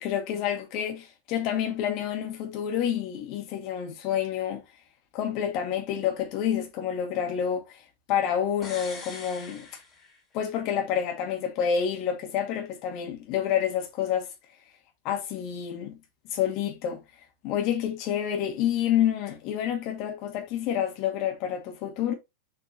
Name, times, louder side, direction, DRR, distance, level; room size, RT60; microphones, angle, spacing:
voice 1, 0.0-4.6 5.1-7.6 8.1-9.6 10.3-14.3 15.0-16.0 16.3-17.0 17.4-22.1, left 9 dB, 40° left, 2.3 m, -28 dB
sound 1, 8.6-10.5 10.8-10.9, left 4 dB, 20° left, 3.7 m, -43 dB
7.0 x 5.2 x 3.0 m
figure-of-eight pair, 90°, 0 cm